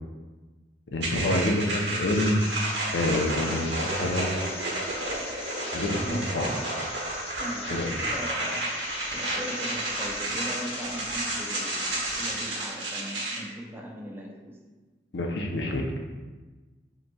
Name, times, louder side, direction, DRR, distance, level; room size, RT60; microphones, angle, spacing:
voice 1, 0.9-2.4 2.9-4.6 5.7-6.5 7.7-7.9 15.1-15.8, left 1 dB, 90° left, 2 dB, 0.6 m, -27 dB
sound 1, 1.0-13.4, right 1 dB, 90° right, 1.3 m, -31 dB
sound 2, 2.1-12.4, left 2 dB, 35° left, 0.8 m, -40 dB
voice 2, 5.9-6.7 7.4-8.8 9.1-14.6, right 1 dB, 15° right, -1 dB, 0.5 m, -39 dB
7.6 x 3.0 x 2.3 m, 1.3 s
head